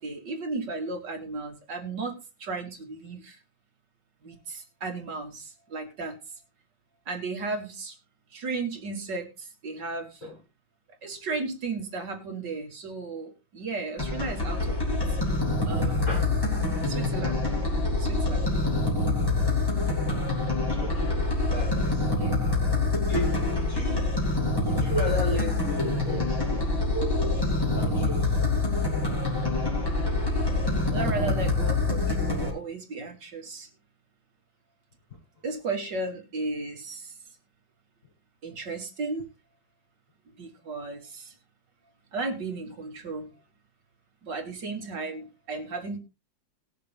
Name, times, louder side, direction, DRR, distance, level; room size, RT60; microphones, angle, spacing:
voice 1, 0.0-3.4 4.2-6.2 7.1-8.0 8.3-10.3 11.0-15.0 15.7-16.2 16.9-17.5 18.0-18.9 22.2-22.4 30.9-33.7 35.4-37.2 38.4-39.3 40.4-41.3 42.1-43.3 44.2-46.0, right 3 dB, 65° right, 2.4 m, -35 dB
sound 1, 14.0-32.5, left 2 dB, 10° left, 3.3 m, -26 dB
voice 2, 20.6-21.2 21.5-22.1 22.9-24.1 24.6-26.7 26.9-28.4, equal, 40° left, 6.7 m, -34 dB
19.5 x 6.7 x 3.4 m
omnidirectional pair, 2.0 m